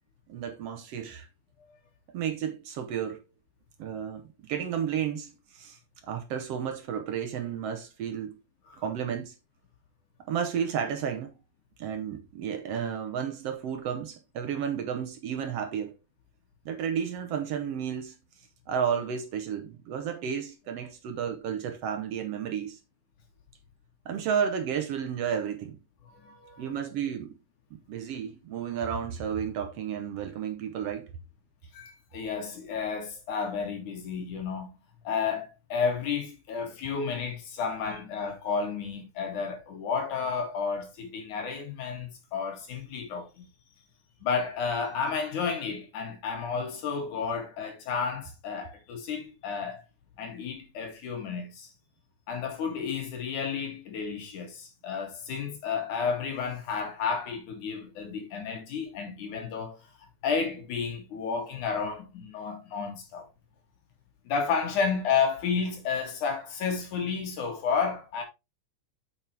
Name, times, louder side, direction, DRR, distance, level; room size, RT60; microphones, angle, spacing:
voice 1, 0.3-1.3 2.1-3.2 3.8-4.2 4.5-8.4 8.8-9.3 10.3-11.3 11.8-15.9 16.6-18.1 18.7-22.8 24.0-25.8 26.6-27.4 27.9-31.1, right 8 dB, 65° right, 1.7 m, -32 dB
voice 2, 26.0-26.8 31.7-34.7 35.0-43.5 44.2-49.8 50.2-51.7 52.3-59.8 60.2-63.3 64.2-68.2, left 5 dB, 80° left, 3.5 m, -31 dB
7.4 x 7.2 x 3.3 m
omnidirectional pair, 3.4 m